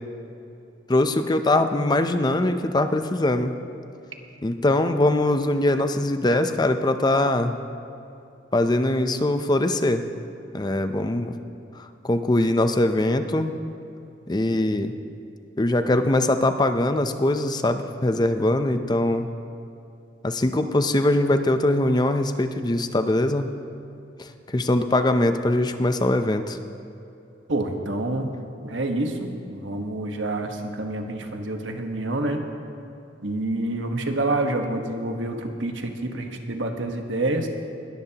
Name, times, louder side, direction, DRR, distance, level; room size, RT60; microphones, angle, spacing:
voice 1, 0.9-3.5 4.4-7.5 8.5-10.0 10.5-11.3 12.0-13.5 14.3-14.9 15.6-19.3 20.2-23.5 24.5-26.6, left 1 dB, 20° left, 8 dB, 0.6 m, -22 dB
voice 2, 27.5-28.3 28.6-32.4 33.2-37.5, right 2 dB, 85° right, 4 dB, 1.3 m, -27 dB
20.5 x 14.0 x 2.9 m, 2.7 s
head